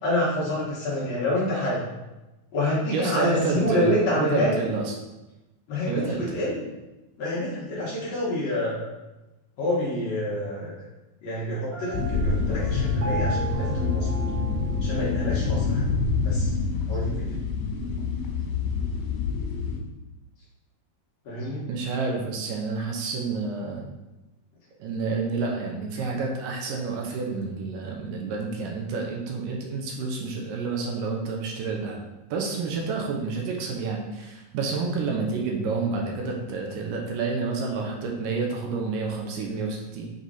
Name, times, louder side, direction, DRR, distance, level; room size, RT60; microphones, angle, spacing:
voice 1, 0.0-1.8 2.5-4.5 5.7-6.6 7.2-8.9 9.6-10.8 11.2-14.2 14.8-15.8 16.2-16.5 16.9-17.3 21.3-21.6, left 1 dB, 55° left, -6 dB, 2.1 m, -27 dB
voice 2, 2.9-4.9 5.9-6.4 21.7-23.8 24.8-32.0 32.3-40.1, right 4 dB, 75° right, 0 dB, 2.3 m, -29 dB
Piano, 11.7-15.6, right 4 dB, 55° right, 1.6 m, -36 dB
sound 1, 11.9-19.8, left 4 dB, 90° left, 2.7 m, -26 dB
6.3 x 3.9 x 4.1 m, 1.0 s
omnidirectional pair, 4.0 m